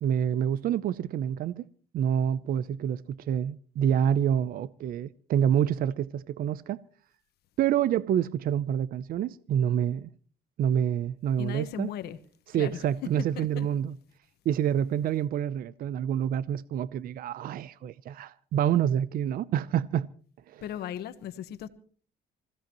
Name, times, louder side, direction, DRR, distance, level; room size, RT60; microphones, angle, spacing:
voice 1, 0.0-1.6 1.9-6.8 7.6-10.1 10.6-11.9 12.5-14.0 14.5-20.1 20.5-20.6, right 9 dB, 60° right, 0.6 m, -27 dB
voice 2, 11.4-12.2 12.6-13.7 20.6-21.7, left 11 dB, 70° left, 1.3 m, -37 dB
27.0 x 16.0 x 3.0 m
cardioid pair, 110°, 17 cm